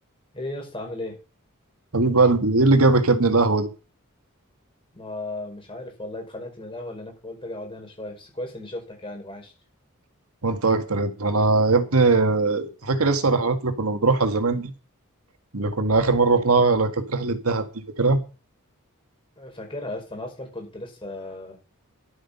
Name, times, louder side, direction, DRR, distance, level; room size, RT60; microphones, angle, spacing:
voice 1, 0.3-1.2 4.9-9.5 19.4-21.6, left 1 dB, 25° left, 4.8 m, -36 dB
voice 2, 1.9-3.7 10.4-14.7 15.5-17.7 18.0-18.2, right 3 dB, 90° right, 1.8 m, -20 dB
12.0 x 8.2 x 5.6 m
head